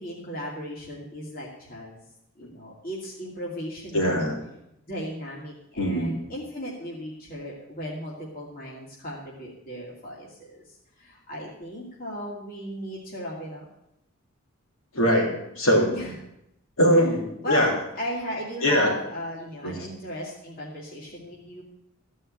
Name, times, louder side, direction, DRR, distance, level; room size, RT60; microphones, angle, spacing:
voice 1, 0.0-2.0 2.4-4.2 4.9-13.6 15.9-16.1 16.9-17.1 17.4-21.6, equal, 45° left, -5 dB, 2.6 m, -36 dB
voice 2, 3.9-4.4 5.8-6.2 14.9-15.9 16.8-17.7 18.6-18.9 19.6-19.7, equal, 90° left, -1 dB, 3.5 m, -22 dB
14.5 x 5.6 x 8.9 m, 0.83 s
head